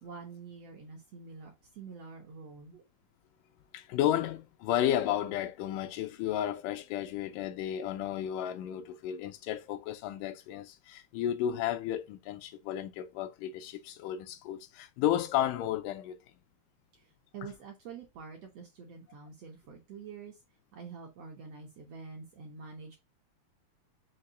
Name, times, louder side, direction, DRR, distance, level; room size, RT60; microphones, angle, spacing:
voice 1, 0.0-2.8 17.3-20.3 20.7-23.0, right 5 dB, 70° right, 1.6 m, -46 dB
voice 2, 3.7-16.2, left 11 dB, 85° left, 2.1 m, -33 dB
5.6 x 2.4 x 3.8 m
omnidirectional pair, 3.8 m